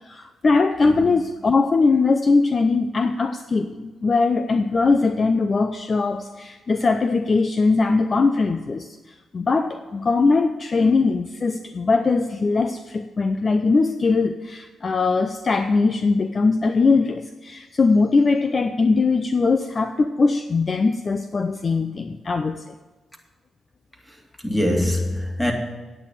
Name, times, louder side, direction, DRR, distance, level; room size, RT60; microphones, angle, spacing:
voice 1, 0.0-22.7, left 4 dB, 40° left, 0.6 m, -21 dB
voice 2, 24.4-25.5, left 1 dB, 10° left, 2.5 m, -23 dB
9.5 x 9.1 x 7.4 m
cardioid pair, 85°, 0 cm